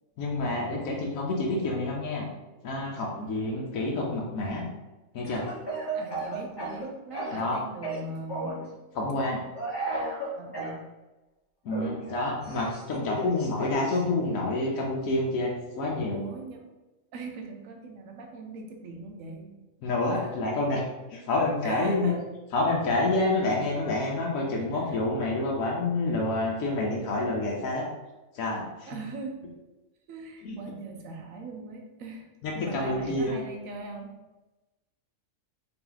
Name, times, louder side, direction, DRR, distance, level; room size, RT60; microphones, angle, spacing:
voice 1, 0.2-2.3 2.6-4.7 5.1-5.4 7.3-7.6 8.9-9.4 11.6-16.2 19.8-20.8 21.1-22.1 22.5-27.8 28.3-28.9 30.4-30.6 32.4-33.3, left 2 dB, 85° left, -3 dB, 1.2 m, -28 dB
Speech / Cough, 5.2-7.5 7.8-8.6 9.5-10.8 11.7-14.0, right 2 dB, 20° left, 0.8 m, -34 dB
voice 2, 5.9-8.8 10.3-10.8 16.1-16.7 17.1-19.6 20.1-20.4 21.6-22.2 24.5-25.0 28.9-29.4 30.1-32.3 32.5-34.1, right 2 dB, 80° right, 2 dB, 1.0 m, -40 dB
3.9 x 2.9 x 3.8 m, 1.1 s
omnidirectional pair, 1.4 m